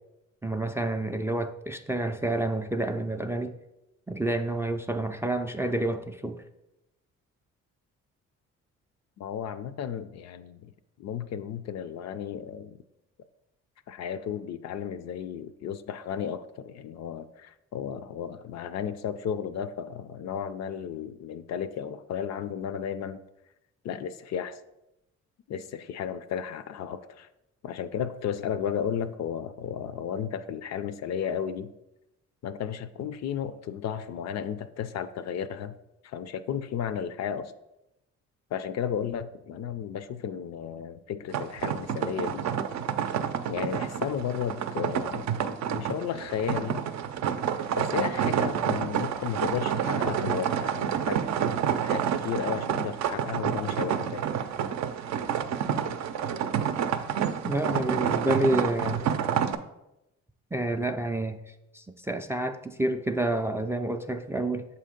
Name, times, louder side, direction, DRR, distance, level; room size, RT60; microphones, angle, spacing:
voice 1, 0.4-3.5 4.1-6.4 57.4-59.0 60.5-61.4 61.7-64.7, right 1 dB, 10° right, 6 dB, 0.3 m, -29 dB
voice 2, 9.2-10.7 11.0-12.8 13.9-23.2 23.8-24.6 25.5-27.3 27.6-31.7 32.4-35.8 36.0-37.5 38.5-42.4 43.5-45.3 45.7-46.8 47.8-51.3 51.8-54.3, left 8 dB, 60° left, 13 dB, 0.5 m, -33 dB
sound 1, 41.3-59.5, right 8 dB, 65° right, 0.5 m, -29 dB
7.1 x 2.8 x 5.0 m, 0.91 s
cardioid pair, 90°, 30 cm